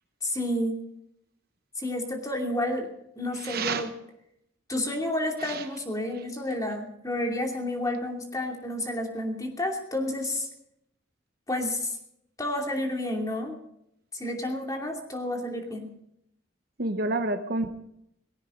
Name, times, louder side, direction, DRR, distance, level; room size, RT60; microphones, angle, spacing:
voice 1, 0.2-0.7 1.8-2.9 3.2-3.9 4.7-10.5 11.5-12.0 12.4-13.6 14.1-15.9, left 1 dB, 20° left, 2 dB, 2.7 m, -30 dB
voice 2, 3.4-3.9 5.4-5.6 16.8-17.7, right 2 dB, 50° right, 8 dB, 1.1 m, -29 dB
18.5 x 16.5 x 3.9 m, 0.77 s
head